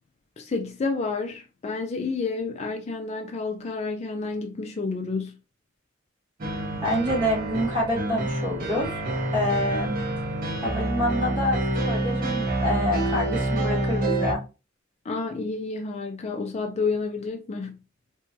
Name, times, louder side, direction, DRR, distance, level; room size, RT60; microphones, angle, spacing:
voice 1, 0.4-5.4 15.0-17.7, left 4 dB, 35° left, 0.4 m, -30 dB
sound 1, 6.4-14.3, right 1 dB, 45° right, 0.6 m, -27 dB
voice 2, 6.8-9.0 9.3-9.9 10.5-14.4, left 1 dB, 25° right, 1.6 m, -27 dB
2.9 x 2.3 x 2.7 m
head